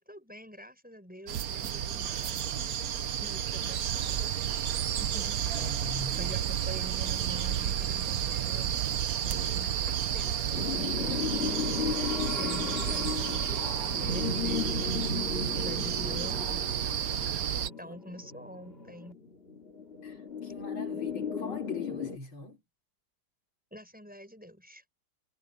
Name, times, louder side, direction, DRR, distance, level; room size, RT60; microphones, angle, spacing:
voice 1, 0.0-2.4 3.2-4.7 5.0-5.4 6.1-8.7 9.2-11.5 12.3-15.1 15.4-16.8 17.8-19.2 23.7-24.8, equal, 5° right, 6.7 m, -46 dB
sound 1, 1.3-17.7, right 9 dB, 55° right, 1.2 m, -32 dB
voice 2, 2.5-2.9 5.6-6.4 10.2-10.3 15.2-15.5 17.5-18.0 20.0-22.6, left 3 dB, 85° left, 5.2 m, -42 dB
sound 2, 3.9-10.8, right 14 dB, 80° right, 0.8 m, -37 dB
sound 3, 10.5-22.2, left 5 dB, 30° left, 2.6 m, -35 dB
omnidirectional pair, 2.2 m